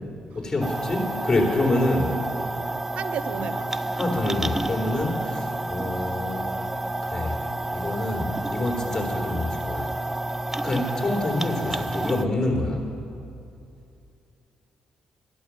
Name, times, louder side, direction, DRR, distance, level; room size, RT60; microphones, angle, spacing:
voice 1, 0.3-2.2 3.3-3.4 3.9-6.5 7.1-7.4 7.7-9.9 10.6-12.9, left 2 dB, 25° left, 3.4 m, -26 dB
sound 1, 0.6-12.2, right 2 dB, 15° right, 0.4 m, -30 dB
voice 2, 2.6-4.1, right 8 dB, 65° right, 0.6 m, -35 dB
12.5 x 11.5 x 7.1 m
supercardioid pair, 60°, 2 cm